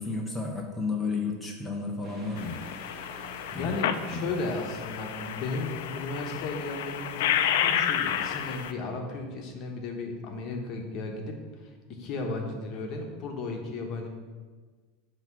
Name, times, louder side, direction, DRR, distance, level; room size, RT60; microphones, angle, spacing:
voice 1, 0.0-2.6 3.5-3.7 4.1-4.2, left 4 dB, 5° left, -1 dB, 0.7 m, -32 dB
sound 1, 2.0-7.5, right 1 dB, 15° right, 1.8 m, -50 dB
sound 2, 2.4-8.7, left 10 dB, 75° left, 0.4 m, -31 dB
voice 2, 3.6-14.1, left 3 dB, 45° left, 2 dB, 1.0 m, -35 dB
7.7 x 3.0 x 6.0 m, 1.5 s
supercardioid pair, 140°, 0 cm